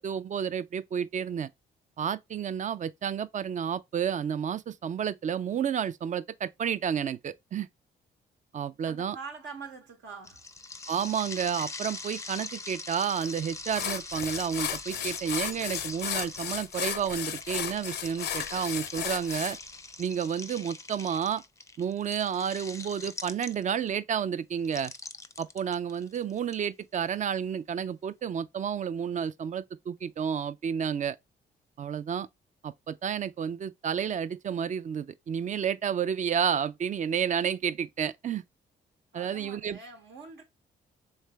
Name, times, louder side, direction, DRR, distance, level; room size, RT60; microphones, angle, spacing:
voice 1, 0.0-1.5 2.0-7.7 8.5-9.2 10.9-19.6 20.0-21.4 21.8-24.9 25.4-31.2 31.8-32.3 32.6-38.4 39.1-39.8, right 8 dB, 40° right, 0.4 m, -31 dB
voice 2, 8.8-10.5 39.1-40.4, right 5 dB, 75° right, 1.1 m, -44 dB
sound 1, 10.2-23.9 24.6-26.5, left 3 dB, 15° left, 0.5 m, -42 dB
sound 2, 13.2-13.3 13.7-19.6, left 9 dB, 65° left, 0.5 m, -34 dB
3.3 x 3.2 x 3.3 m
supercardioid pair, 65°, 19 cm